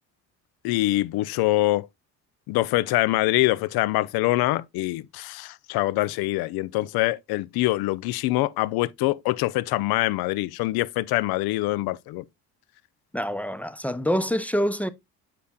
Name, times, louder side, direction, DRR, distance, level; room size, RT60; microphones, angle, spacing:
voice 1, 0.6-1.9 2.5-12.2, left 18 dB, 55° left, 0.5 m, -24 dB
voice 2, 13.1-14.9, equal, 5° left, 0.5 m, -26 dB
8.3 x 5.8 x 2.2 m
hypercardioid pair, 60°, 45 cm